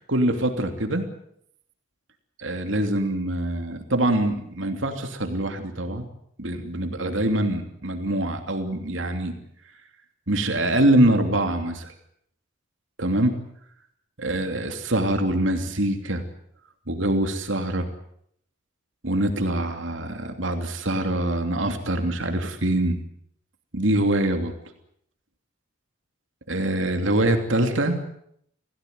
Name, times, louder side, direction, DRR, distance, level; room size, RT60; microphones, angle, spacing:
voice 1, 0.1-1.1 2.4-6.1 6.4-9.3 10.3-11.9 13.0-13.4 14.2-16.2 16.9-17.9 19.0-23.0 23.7-24.5 26.5-28.0, right 1 dB, 80° right, 5 dB, 2.9 m, -24 dB
28.5 x 17.0 x 9.4 m, 0.72 s
head